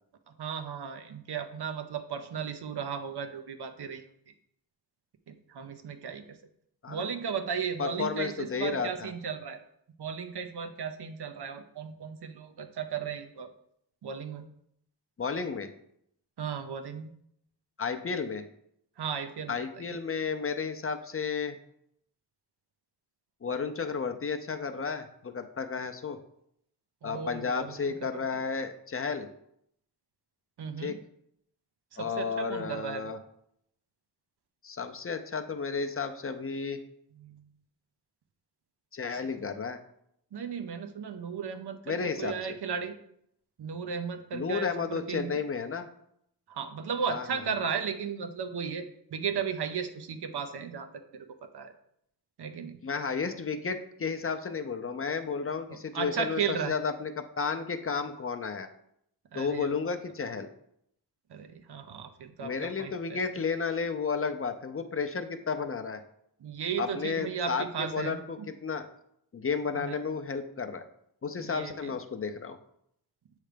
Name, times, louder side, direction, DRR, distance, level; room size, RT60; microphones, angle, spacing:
voice 1, 0.4-4.0 5.5-6.2 6.9-9.6 10.0-13.5 14.0-14.5 16.4-17.1 19.0-19.6 27.0-27.7 28.1-28.2 30.6-31.0 31.9-33.1 37.2-37.4 40.3-42.9 43.6-45.4 46.5-48.9 49.1-50.9 51.1-51.3 51.5-51.7 52.4-52.8 55.9-56.7 59.3-59.7 61.3-63.2 66.4-68.5 69.7-70.0 71.4-71.9, right 6 dB, 80° right, 7 dB, 0.7 m, -35 dB
voice 2, 7.8-9.1 15.2-15.7 17.8-18.4 19.5-21.6 23.4-26.2 27.0-29.3 30.8-31.0 32.0-33.2 34.6-36.8 38.9-39.8 41.9-42.6 44.3-45.9 47.1-47.4 52.8-58.7 59.3-60.5 62.4-66.0 66.8-68.9 69.3-70.8 71.2-72.6, left 5 dB, 35° left, 7 dB, 0.5 m, -32 dB
7.5 x 3.3 x 5.0 m, 0.73 s
wide cardioid pair, 125°, 39 cm